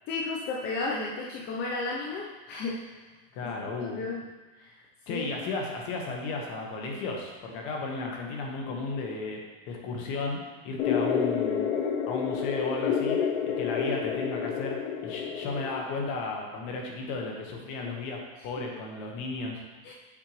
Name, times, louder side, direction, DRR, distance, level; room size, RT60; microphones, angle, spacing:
voice 1, 0.1-3.1 3.4-4.2 4.6-4.8 5.1-5.3 19.8-19.9, left 3 dB, 35° left, -3 dB, 0.8 m, -33 dB
voice 2, 3.3-4.0 5.1-9.4 9.7-10.4 10.6-11.7 12.1-13.2 13.6-14.8 15.0-19.6, left 3 dB, 55° left, 0 dB, 1.5 m, -34 dB
sound 1, 10.8-15.8, left 7 dB, 70° left, 0.9 m, -29 dB
7.4 x 5.6 x 3.3 m, 1.2 s
supercardioid pair, 150°, 30 cm